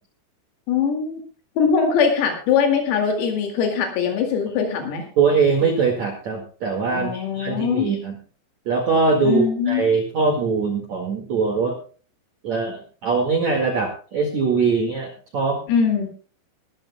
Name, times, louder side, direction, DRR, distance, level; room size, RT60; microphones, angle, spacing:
voice 1, 0.7-1.2 1.6-5.0 6.9-7.9 9.2-9.9 15.7-16.1, left 6 dB, 80° left, 4 dB, 4.9 m, -21 dB
voice 2, 5.2-8.1 8.7-11.8 12.4-15.6, right 4 dB, 55° right, 2 dB, 2.1 m, -22 dB
23.0 x 13.0 x 2.2 m, 0.39 s
omnidirectional pair, 6.0 m